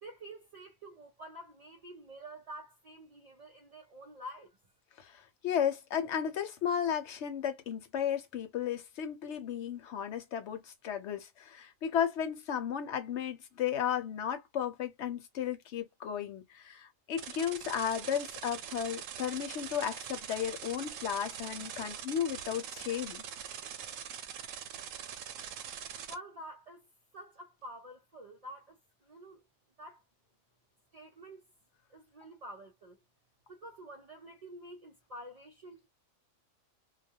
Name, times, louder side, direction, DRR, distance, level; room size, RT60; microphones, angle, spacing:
voice 1, 0.0-4.6 26.1-26.9 27.1-29.4 29.8-30.0 30.9-31.4 31.9-33.0 33.5-35.9, right 1 dB, 45° right, 0.5 m, -48 dB
voice 2, 5.0-23.2, left 9 dB, 65° left, 1.0 m, -34 dB
sound 1, 17.2-26.1, right 8 dB, 80° right, 0.9 m, -43 dB
2.4 x 2.2 x 2.7 m
omnidirectional pair, 1.3 m